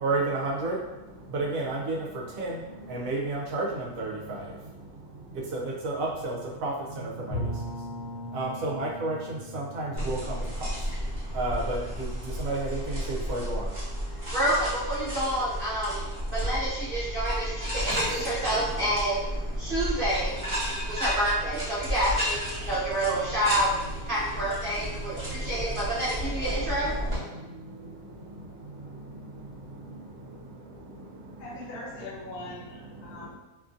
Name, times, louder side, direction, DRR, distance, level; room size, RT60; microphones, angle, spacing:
voice 1, 0.0-0.8 1.3-1.9 2.4-2.6 2.9-4.4 5.5-6.7 7.3-7.4 8.3-9.2 9.5-10.2 11.3-11.8 12.4-12.8 13.3-13.6, right 2 dB, 70° right, -2 dB, 1.0 m, -30 dB
Bowed string instrument, 7.3-12.1, equal, 50° left, 1.0 m, -39 dB
sound 1, 10.0-27.2, equal, 25° right, 1.0 m, -33 dB
voice 2, 14.3-16.0 16.3-20.3 20.9-23.7 24.1-26.9, right 1 dB, 50° right, -9 dB, 0.7 m, -28 dB
sound 2, 17.8-27.3, equal, 15° left, 0.8 m, -47 dB
voice 3, 31.4-33.3, left 2 dB, 80° left, -3 dB, 1.2 m, -41 dB
2.8 x 2.5 x 2.5 m, 1.0 s
omnidirectional pair, 1.6 m